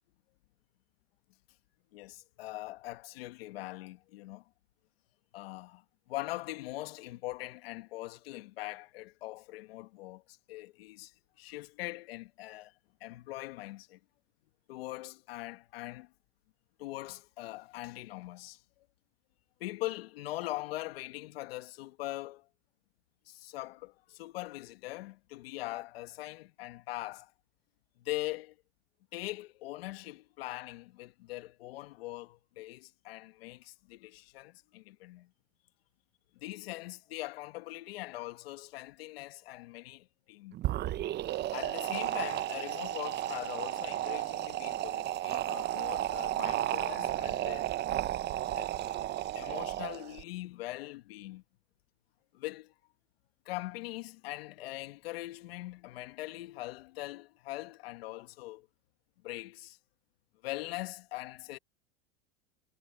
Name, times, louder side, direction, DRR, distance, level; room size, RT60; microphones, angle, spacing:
voice 1, 1.9-4.4 5.3-12.7 13.0-14.0 14.7-16.1 16.8-18.9 19.6-22.5 23.3-27.3 28.0-28.6 29.1-35.3 36.4-40.6 41.5-47.7 48.5-48.7 49.3-51.4 52.3-52.7 53.5-58.7 59.2-59.8 60.4-61.6, left 18 dB, 80° left, 1.8 m, -42 dB
sound 1, 40.5-50.2, right 13 dB, 35° right, 0.9 m, -33 dB
supercardioid pair, 120°, 30 cm